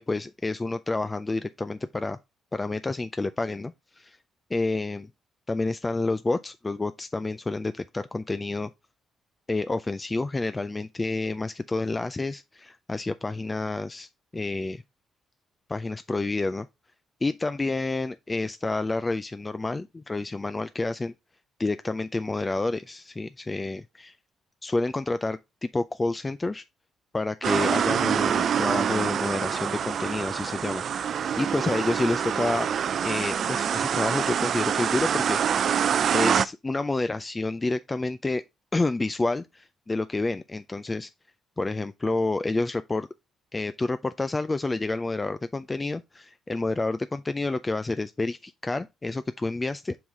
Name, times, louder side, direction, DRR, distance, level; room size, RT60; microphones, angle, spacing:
voice 1, 0.0-2.2 2.5-4.2 4.5-5.1 5.5-8.7 9.5-14.8 15.7-16.7 17.2-21.1 21.6-24.1 24.6-26.6 27.1-32.7 33.0-35.8 36.1-38.4 38.7-41.1 41.6-43.1 43.5-50.0, left 2 dB, 20° left, 0.3 m, -29 dB
sound 1, 27.4-36.5, right 8 dB, 60° right, 0.3 m, -26 dB
5.5 x 4.7 x 3.6 m
cardioid pair, 90°, 0 cm